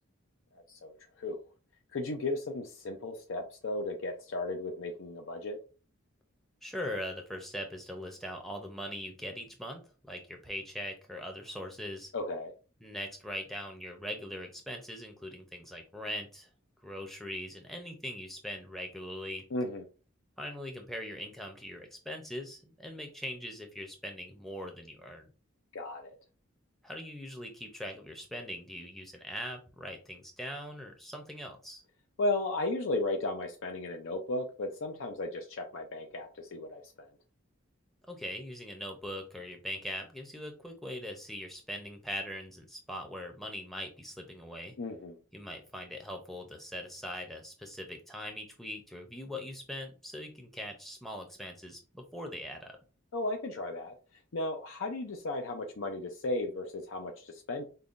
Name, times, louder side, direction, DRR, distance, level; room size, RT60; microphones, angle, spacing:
voice 1, 1.9-5.6 12.1-12.5 19.5-19.8 25.7-26.2 32.2-37.1 44.8-45.2 53.1-53.9 54.3-57.6, left 2 dB, 75° left, 4 dB, 0.5 m, -35 dB
voice 2, 6.6-9.8 10.1-12.1 12.8-16.5 16.8-19.5 20.4-25.3 26.8-31.8 38.1-44.7 45.3-52.8, equal, ahead, 4 dB, 0.6 m, -41 dB
5.3 x 2.2 x 2.5 m, 0.35 s
head